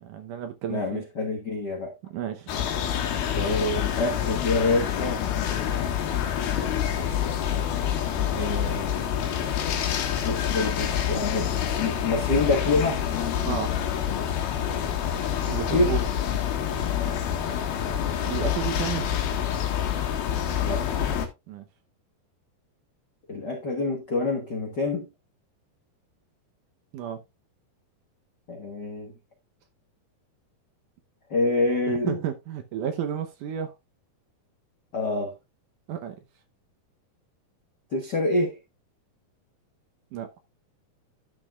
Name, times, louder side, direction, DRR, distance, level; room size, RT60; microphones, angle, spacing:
voice 1, 0.0-1.0 2.0-2.5 13.4-13.7 15.5-16.0 18.2-19.0 21.5-21.7 26.9-27.2 31.9-33.7 35.9-36.2 40.1-40.3, right 9 dB, 70° right, 2.2 m, -32 dB
voice 2, 0.7-1.9 3.4-5.2 8.3-9.2 10.2-13.0 15.7-15.9 17.0-17.2 20.6-20.8 23.3-25.1 28.5-29.1 31.3-32.2 34.9-35.3 37.9-38.6, left 2 dB, 55° left, 1.1 m, -26 dB
sound 1, 2.5-21.3, left 9 dB, 85° left, 3.2 m, -27 dB
12.0 x 6.8 x 2.4 m
omnidirectional pair, 4.3 m